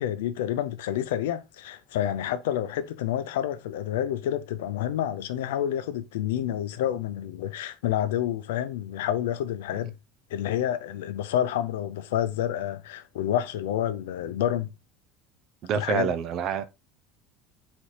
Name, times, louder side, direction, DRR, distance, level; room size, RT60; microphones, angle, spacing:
voice 1, 0.0-10.0 10.3-14.7 15.7-16.1, left 11 dB, 80° left, 0.5 m, -29 dB
voice 2, 15.6-16.6, right 8 dB, 55° right, 0.6 m, -27 dB
4.1 x 3.1 x 4.1 m
hypercardioid pair, 85°, 0 cm